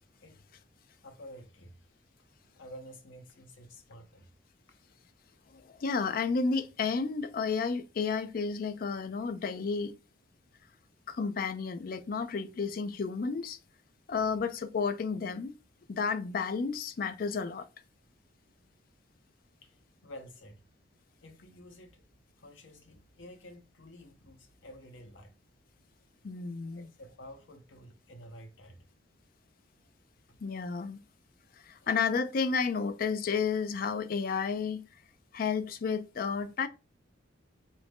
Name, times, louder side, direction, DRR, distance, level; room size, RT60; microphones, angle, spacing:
voice 1, 1.0-1.9 2.6-4.3 19.6-20.6 21.2-22.0 22.4-25.3 26.7-28.9 30.3-30.4 31.8-31.9, equal, 70° left, 0.8 m, -51 dB
voice 2, 5.5-10.0 11.1-13.6 14.1-15.5 15.9-17.7 26.2-26.8 30.4-31.0 31.6-34.8 35.3-36.7, left 5 dB, 45° left, 0.4 m, -32 dB
4.1 x 2.5 x 3.4 m
head